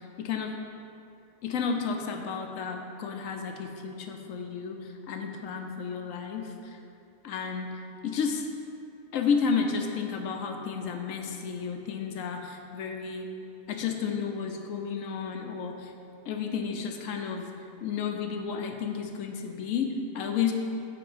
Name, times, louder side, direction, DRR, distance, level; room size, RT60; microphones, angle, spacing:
voice 1, 0.2-0.5 1.4-6.8 7.2-8.4 9.1-13.3 13.7-15.9 16.3-17.5 17.8-20.5, left 6 dB, 75° left, 4 dB, 1.0 m, -32 dB
7.8 x 5.0 x 5.0 m, 2.6 s
omnidirectional pair, 1.4 m